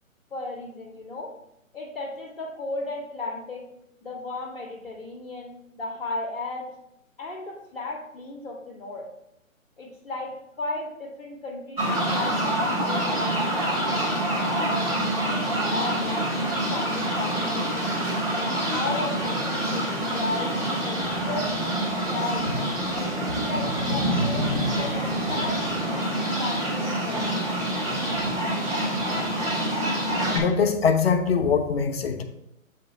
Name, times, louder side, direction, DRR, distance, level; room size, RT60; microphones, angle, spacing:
voice 1, 0.3-1.3 1.7-3.7 4.0-6.7 7.2-9.0 9.8-13.9 14.6-17.9 18.3-20.6 20.8-22.5 22.9-27.5, left 2 dB, ahead, -13 dB, 0.6 m, -35 dB
sound 1, 11.8-30.4, right 1 dB, 15° right, 1.3 m, -26 dB
voice 2, 30.3-32.2, left 6 dB, 45° left, 6 dB, 0.7 m, -22 dB
7.2 x 3.0 x 5.4 m, 0.84 s
hypercardioid pair, 150°, 41 cm